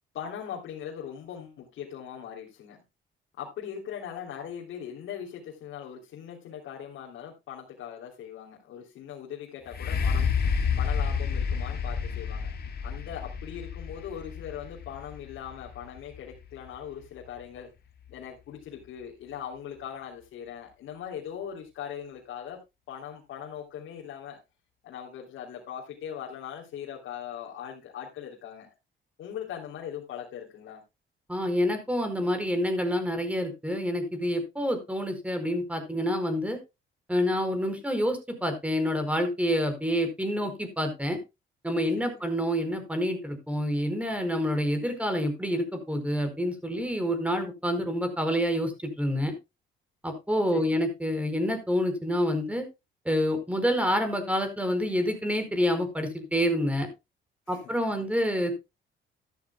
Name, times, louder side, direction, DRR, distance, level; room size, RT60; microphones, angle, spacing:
voice 1, 0.1-2.8 3.4-10.3 10.8-12.5 12.8-17.7 18.1-22.6 22.9-24.4 24.8-28.7 29.2-30.8 42.0-42.3 50.5-50.9 57.5-57.6, left 9 dB, 80° left, 3.3 m, -40 dB
sound 1, 9.7-17.4 18.1-18.2, left 6 dB, 50° left, 2.4 m, -30 dB
voice 2, 31.3-36.6 37.1-41.2 41.6-49.3 50.0-52.6 53.0-56.9 57.5-58.5, equal, 5° right, 4.6 m, -27 dB
13.0 x 13.0 x 2.3 m
cardioid pair, 90°, 20 cm